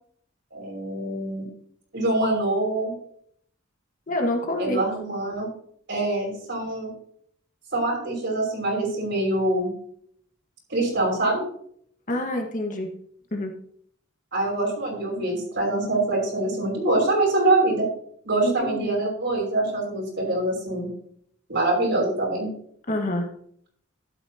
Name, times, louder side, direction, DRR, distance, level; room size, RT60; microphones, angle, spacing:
voice 1, 0.5-1.5 1.9-2.9 4.6-5.5 5.9-6.9 7.7-9.7 10.7-11.5 14.3-17.9 18.2-20.9 21.5-22.5, right 2 dB, 60° right, -1 dB, 5.6 m, -24 dB
voice 2, 4.1-4.8 12.1-12.9 13.3-13.5 18.4-19.0 22.9-23.3, left 1 dB, 40° left, 3 dB, 1.6 m, -27 dB
12.5 x 11.5 x 2.9 m, 0.64 s
head